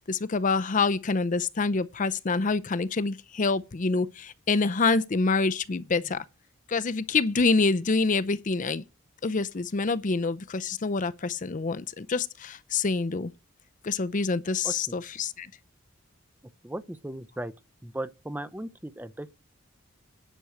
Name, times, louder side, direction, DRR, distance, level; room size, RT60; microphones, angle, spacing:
voice 1, 0.1-6.2 6.7-8.8 9.2-13.3 13.8-15.5, left 4 dB, 40° left, 0.5 m, -26 dB
voice 2, 16.6-17.5 17.8-19.4, right 1 dB, 10° right, 0.6 m, -36 dB
10.0 x 6.2 x 7.8 m
head